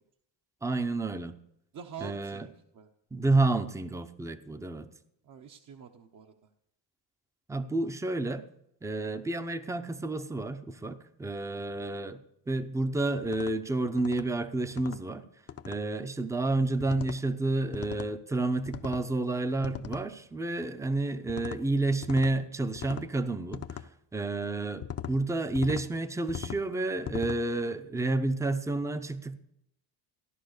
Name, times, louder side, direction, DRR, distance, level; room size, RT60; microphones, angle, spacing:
voice 1, 0.6-1.3 2.0-2.5 3.1-4.9 7.5-8.4 8.8-12.2 12.5-15.3 15.6-23.8 24.1-29.4, right 2 dB, 5° right, 11 dB, 0.7 m, -30 dB
voice 2, 1.7-2.5 2.7-2.9 5.2-6.5, right 7 dB, 45° right, 4 dB, 1.0 m, -45 dB
sound 1, 13.2-13.5 14.0-14.3 14.7-15.0 15.5-15.8 16.8-17.2 17.7-18.1 18.7-19.1 19.6-20.1 21.3-21.6 22.0-22.3 22.8-23.1 23.5-23.9 24.8-25.1 25.6-25.9 26.3-26.6 27.1-27.4, left 9 dB, 35° left, 0.7 m, -39 dB
15.5 x 11.0 x 6.6 m, 0.79 s
cardioid pair, 150°, 45 cm